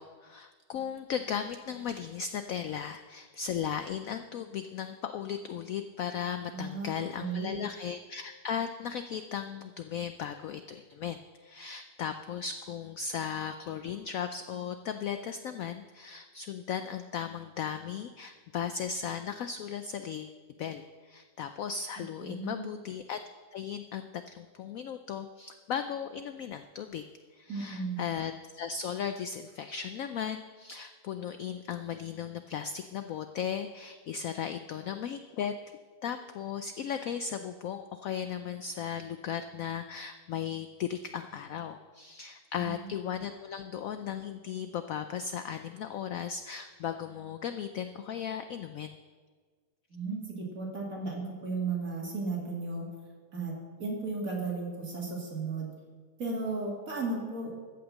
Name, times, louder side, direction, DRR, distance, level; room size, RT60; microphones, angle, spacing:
voice 1, 0.0-23.2 23.5-27.0 27.3-35.5 36.0-49.0, left 8 dB, 80° left, 8 dB, 0.7 m, -36 dB
voice 2, 6.5-6.9 7.2-7.6 22.2-22.7 27.5-28.0 42.6-42.9 49.9-52.9 53.3-55.7 56.2-57.5, right 3 dB, 50° right, -3 dB, 3.0 m, -35 dB
14.0 x 5.8 x 7.4 m, 1.5 s
omnidirectional pair, 2.0 m